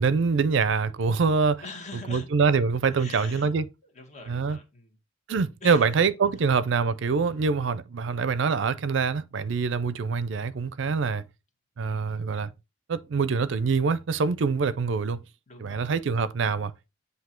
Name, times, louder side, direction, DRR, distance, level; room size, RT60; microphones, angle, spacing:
voice 1, 0.0-1.6 1.9-3.7 4.3-4.6 5.3-11.3 11.8-12.5 12.9-15.2 15.6-16.7, right 5 dB, 65° right, 0.4 m, -25 dB
voice 2, 1.6-2.3 2.9-3.5 3.9-5.0 5.6-5.9 11.8-12.0 15.5-15.8, left 3 dB, 35° left, 1.5 m, -43 dB
8.1 x 2.7 x 4.3 m
head